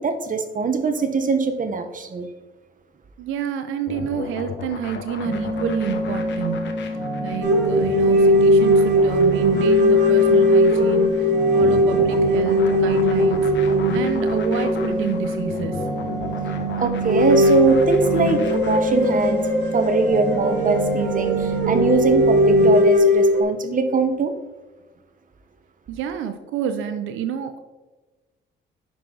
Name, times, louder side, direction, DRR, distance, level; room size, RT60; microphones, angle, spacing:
voice 1, 0.0-2.3 16.8-19.4 19.7-24.3, right 4 dB, 40° right, 8 dB, 1.2 m, -22 dB
voice 2, 3.2-15.9 25.9-27.6, right 9 dB, 90° right, 9 dB, 0.6 m, -29 dB
sound 1, 3.9-19.3, left 6 dB, 65° left, 1.2 m, -36 dB
sound 2, 5.3-22.7, right 2 dB, 20° right, 1.9 m, -27 dB
sound 3, 7.4-16.1 16.4-16.5 17.0-23.4, left 1 dB, 60° right, 2.7 m, -19 dB
9.4 x 6.1 x 3.9 m, 1.2 s
cardioid pair, 90°, 20 cm